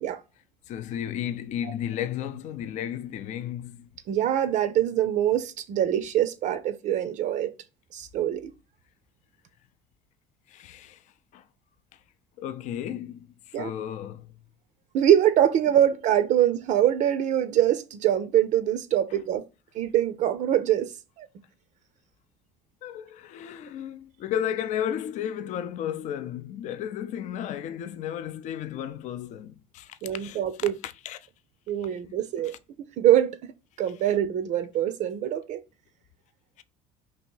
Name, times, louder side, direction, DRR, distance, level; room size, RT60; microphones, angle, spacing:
voice 1, 0.7-3.9 10.5-11.0 11.3-11.5 11.9-12.0 12.4-14.4 22.8-31.3 31.8-32.6 36.6-36.7, left 10 dB, 55° left, 0.4 m, -34 dB
voice 2, 4.1-7.5 7.9-8.5 13.5-13.7 14.9-19.5 19.7-21.3 30.0-30.7 31.7-33.5 33.8-35.6, right 11 dB, 55° right, 0.4 m, -24 dB
2.9 x 2.7 x 4.4 m
supercardioid pair, 95°, 15 cm